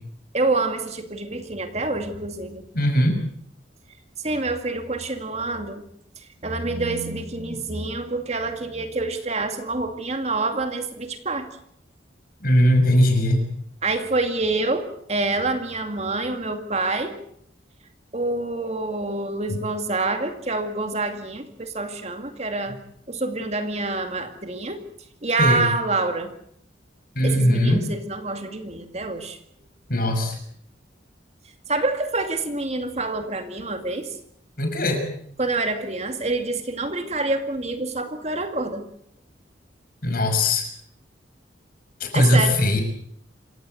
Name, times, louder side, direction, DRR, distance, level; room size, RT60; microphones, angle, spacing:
voice 1, 0.3-2.6 4.2-5.8 6.4-11.5 13.8-17.1 18.1-22.8 23.1-24.8 25.2-26.3 27.2-29.4 31.7-34.2 35.4-38.8 42.1-42.6, right 3 dB, 35° right, 7 dB, 2.3 m, -27 dB
voice 2, 2.7-3.2 12.4-13.4 19.5-19.6 25.4-25.6 27.2-27.9 29.9-30.4 34.6-35.0 40.0-40.7 42.0-42.8, left 1 dB, 50° left, 5 dB, 6.1 m, -19 dB
27.5 x 17.0 x 7.9 m, 0.68 s
head